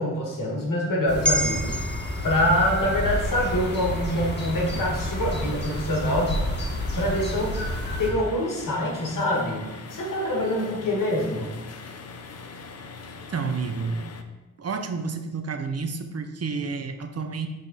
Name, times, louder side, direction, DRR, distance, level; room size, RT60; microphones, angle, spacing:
voice 1, 0.0-1.8 2.2-6.3 7.0-7.6 8.0-11.5, equal, 75° left, -2 dB, 1.7 m, -25 dB
sound 1, 1.1-8.1, left 1 dB, 35° left, 1.3 m, -30 dB
sound 2, 1.2-5.7 6.1-6.3, equal, 5° left, 0.3 m, -33 dB
sound 3, 2.8-14.2, left 4 dB, 50° left, 0.6 m, -41 dB
voice 2, 13.3-14.1 14.6-17.5, right 4 dB, 50° right, 7 dB, 0.6 m, -30 dB
6.5 x 3.6 x 4.0 m, 1.1 s
cardioid pair, 65°, 32 cm